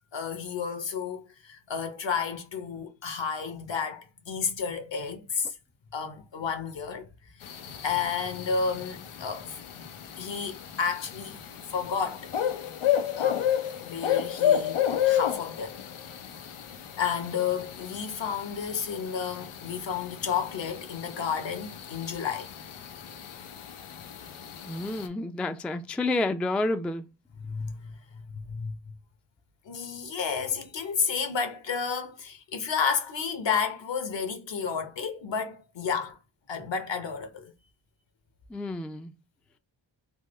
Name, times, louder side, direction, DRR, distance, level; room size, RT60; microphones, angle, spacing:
voice 1, 0.1-5.6 5.9-7.1 7.3-9.9 10.2-11.4 11.7-12.3 13.2-13.5 13.8-15.8 17.0-22.5 27.4-27.9 28.3-28.7 29.6-36.2 36.5-37.5, left 6 dB, 65° left, 1.0 m, -31 dB
sound 1, 7.4-25.1, left 10 dB, 90° left, 0.6 m, -32 dB
voice 2, 24.7-27.1 38.5-39.1, left 2 dB, 5° left, 0.3 m, -29 dB
3.6 x 2.2 x 3.1 m
cardioid pair, 40°, 48 cm